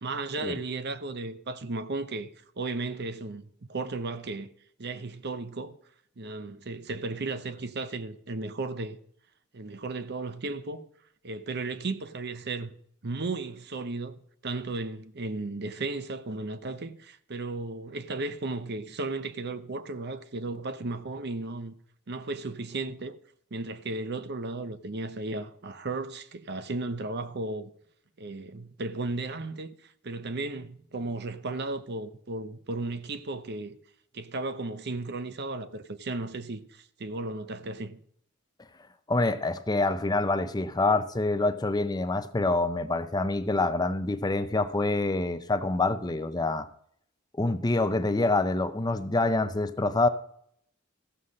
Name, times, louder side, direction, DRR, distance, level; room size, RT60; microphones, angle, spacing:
voice 1, 0.0-2.3 2.6-4.5 4.8-5.8 6.2-9.0 9.5-10.8 11.2-12.7 13.0-21.7 22.1-23.2 23.5-27.7 28.2-33.8 34.1-38.0, right 3 dB, 55° right, 0.8 m, -35 dB
voice 2, 39.1-46.7 47.4-50.1, left 2 dB, 20° left, 0.6 m, -26 dB
15.0 x 5.7 x 6.5 m
head